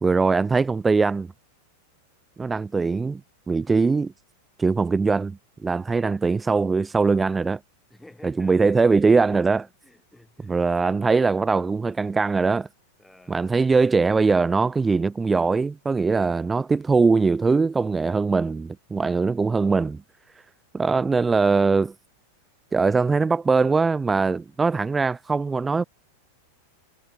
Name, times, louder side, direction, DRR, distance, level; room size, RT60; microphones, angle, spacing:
voice 1, 0.0-1.3 2.4-3.2 3.5-4.1 4.6-7.6 8.2-9.7 10.5-12.7 13.3-20.0 20.7-21.9 22.7-25.8, right 4 dB, 15° right, 0.7 m, -21 dB
voice 2, 7.9-9.0 9.6-11.0 13.0-13.4 16.1-16.5, left 1 dB, 5° left, 7.5 m, -53 dB
figure-of-eight pair, 90°, 0 cm